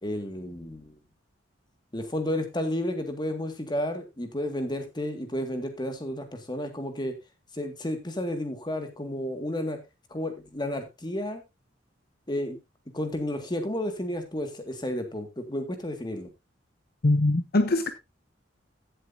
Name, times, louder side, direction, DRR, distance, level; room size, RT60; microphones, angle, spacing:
voice 1, 0.0-0.9 1.9-7.1 7.5-9.8 10.1-11.4 12.3-12.6 12.9-16.3, left 1 dB, 25° left, 1.9 m, -32 dB
voice 2, 17.0-17.9, left 2 dB, 55° left, 0.9 m, -22 dB
15.5 x 7.8 x 2.7 m
head